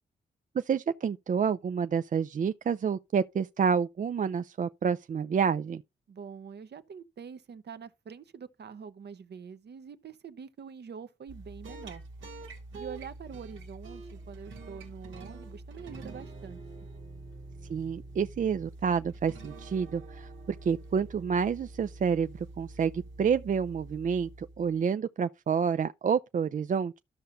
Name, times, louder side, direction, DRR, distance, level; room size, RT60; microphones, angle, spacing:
voice 1, 0.5-5.8 17.7-27.0, right 6 dB, 45° right, 0.4 m, -29 dB
voice 2, 6.1-12.0 12.8-16.9, right 6 dB, 60° right, 0.8 m, -45 dB
sound 1, 11.3-24.9, right 2 dB, 85° right, 1.6 m, -46 dB
13.0 x 5.6 x 2.6 m
supercardioid pair, 50°, 19 cm